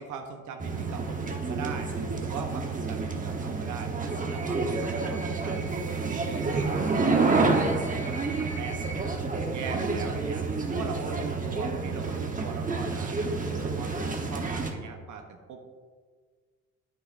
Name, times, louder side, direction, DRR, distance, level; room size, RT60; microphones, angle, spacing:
voice 1, 0.0-1.9 2.2-5.7 6.1-9.1 9.4-10.4 10.7-13.3 13.6-15.6, right 6 dB, 75° right, 4 dB, 1.0 m, -40 dB
sound 1, 0.6-14.7, right 3 dB, 25° right, 1.1 m, -29 dB
10.0 x 8.7 x 2.6 m, 1.5 s
cardioid pair, 90°, 30 cm